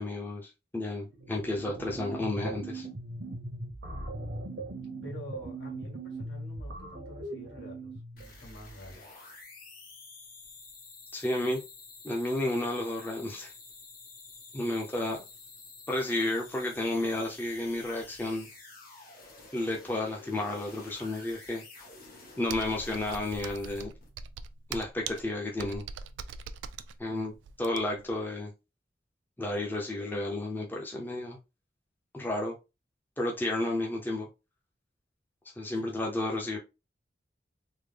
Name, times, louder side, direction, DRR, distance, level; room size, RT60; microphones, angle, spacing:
voice 1, 0.0-2.9 11.1-11.6 12.0-13.5 14.5-15.2 15.9-18.5 19.5-21.6 22.4-23.9 24.7-25.8 27.0-27.3 27.6-28.5 29.4-31.4 32.1-32.5 33.2-34.3 35.6-36.6, left 1 dB, 10° left, 0.6 m, -32 dB
sound 1, 1.1-8.2, right 2 dB, 70° right, 0.8 m, -39 dB
voice 2, 5.0-9.0 27.1-27.3 35.7-36.0, left 1 dB, 75° left, 1.7 m, -48 dB
sound 2, 8.2-24.1, left 3 dB, 50° left, 1.4 m, -50 dB
Computer keyboard, 22.5-28.1, right 6 dB, 90° right, 0.3 m, -41 dB
3.6 x 2.1 x 3.4 m
head